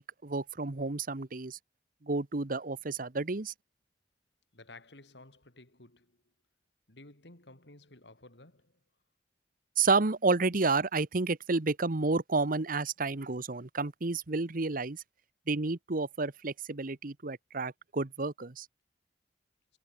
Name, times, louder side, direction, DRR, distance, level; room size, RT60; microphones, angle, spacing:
voice 1, 0.0-1.6 2.0-3.5 9.8-15.0 15.5-18.7, right 3 dB, 55° right, 1.1 m, -30 dB
voice 2, 4.5-6.3 6.9-8.8, left 2 dB, 80° left, 4.1 m, -54 dB
head